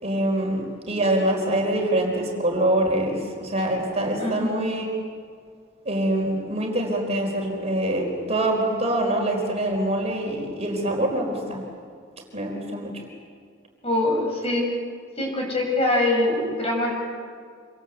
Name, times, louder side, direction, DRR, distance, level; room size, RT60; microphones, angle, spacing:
voice 1, 0.0-4.9 5.8-11.6 12.3-12.9, right 1 dB, 35° right, 1 dB, 4.6 m, -24 dB
voice 2, 4.2-4.5 13.8-14.6 15.2-16.9, left 2 dB, 30° left, 0 dB, 7.5 m, -23 dB
27.0 x 26.5 x 8.2 m, 2.1 s
head